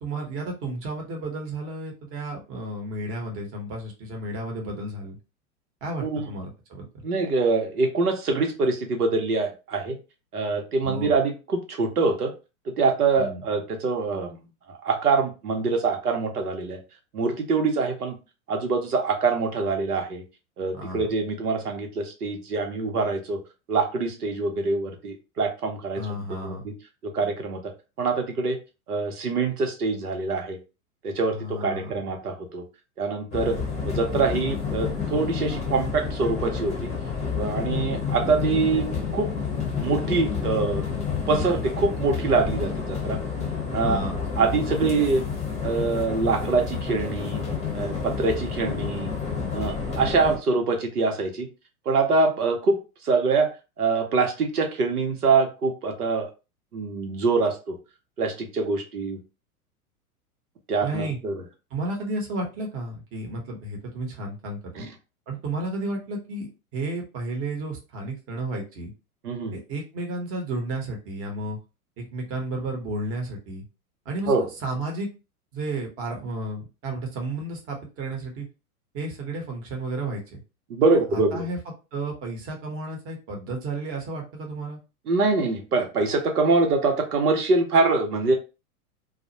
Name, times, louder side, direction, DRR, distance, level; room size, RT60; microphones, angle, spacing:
voice 1, 0.0-5.2 5.8-7.0 10.8-11.1 13.2-13.4 20.7-21.1 25.9-26.6 31.3-32.0 43.8-44.2 60.8-61.2 61.7-64.8 65.3-68.9 69.5-71.6 72.0-73.6 74.0-75.1 75.5-78.5 78.9-80.4 80.9-81.6 81.9-84.8, right 2 dB, 30° right, 1 dB, 0.9 m, -32 dB
voice 2, 7.0-10.0 10.3-12.3 12.7-14.4 14.7-16.8 17.1-18.1 18.5-20.2 20.6-23.4 23.7-26.0 26.4-26.7 27.1-27.6 28.0-28.6 28.9-30.6 31.0-32.6 33.0-33.6 33.8-36.9 37.3-39.3 39.8-40.8 41.3-43.2 43.7-44.0 44.4-45.2 45.6-47.4 47.7-49.1 49.5-51.5 51.9-52.7 53.0-53.5 53.8-56.3 56.7-57.8 58.2-59.2 60.7-61.4 64.8-64.9 69.2-69.5 74.3-74.4 80.7-81.4 85.1-88.3, right 4 dB, 85° right, 4 dB, 0.8 m, -24 dB
sound 1, 33.3-50.4, left 6 dB, 15° left, 0.7 m, -29 dB
2.4 x 2.0 x 2.7 m, 0.30 s
hypercardioid pair, 100°, 45 cm